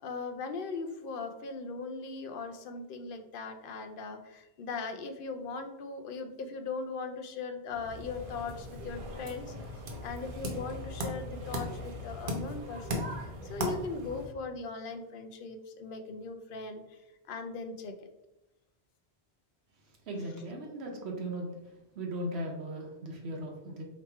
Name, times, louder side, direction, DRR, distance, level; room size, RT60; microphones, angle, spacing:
voice 1, 0.0-9.5 10.0-17.0 17.3-17.9, left 4 dB, 65° left, 7 dB, 0.7 m, -39 dB
sound 1, 7.7-14.3, equal, 60° right, 0.9 m, -38 dB
voice 2, 20.1-21.5 21.9-23.8, right 1 dB, 90° right, 0 dB, 1.0 m, -37 dB
3.0 x 2.9 x 4.5 m, 0.94 s
omnidirectional pair, 1.1 m